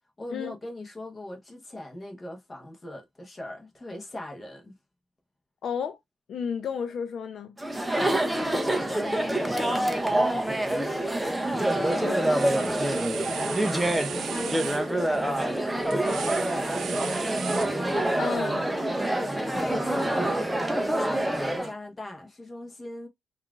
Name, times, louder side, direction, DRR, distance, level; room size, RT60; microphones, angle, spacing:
voice 1, 0.2-4.8 7.9-10.8 11.7-16.7 18.9-23.1, left 1 dB, 20° left, 0.9 m, -40 dB
voice 2, 5.6-6.0 6.3-7.5 12.0-12.2 18.1-18.7, left 7 dB, 55° left, 0.4 m, -32 dB
Chatter, 7.6-21.7, right 1 dB, 5° right, 0.5 m, -26 dB
sound 1, 11.1-11.4 11.7-18.2, right 8 dB, 65° right, 0.4 m, -38 dB
5.5 x 2.4 x 2.3 m
cardioid pair, 150°, 0 cm